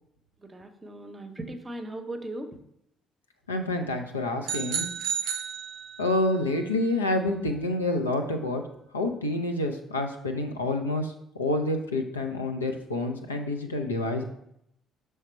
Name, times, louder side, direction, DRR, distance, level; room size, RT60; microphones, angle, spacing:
voice 1, 0.4-2.6, right 1 dB, 20° right, 7 dB, 0.8 m, -38 dB
voice 2, 3.5-4.9 6.0-8.6 8.9-14.2, left 2 dB, 80° left, 4 dB, 0.5 m, -28 dB
sound 1, 4.4-6.3, right 7 dB, 60° right, 0.5 m, -32 dB
6.5 x 3.3 x 4.3 m, 0.76 s
figure-of-eight pair, 50°, 0 cm